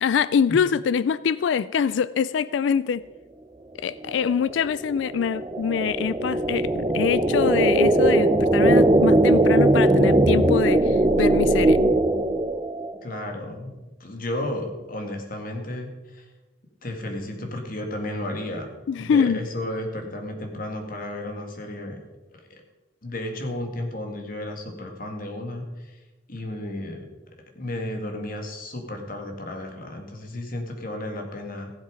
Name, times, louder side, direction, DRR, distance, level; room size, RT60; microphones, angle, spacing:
voice 1, 0.0-3.0 3.8-11.8 18.9-19.4, left 7 dB, 90° left, 17 dB, 0.3 m, -24 dB
sound 1, 4.1-12.9, right 1 dB, 25° right, 0.7 m, -20 dB
voice 2, 13.0-13.7 14.0-16.3 16.8-22.0 22.5-22.6 23.0-26.0 26.3-27.1 27.6-31.7, left 1 dB, 50° left, 4 dB, 2.0 m, -33 dB
16.0 x 7.4 x 5.1 m, 1.1 s
head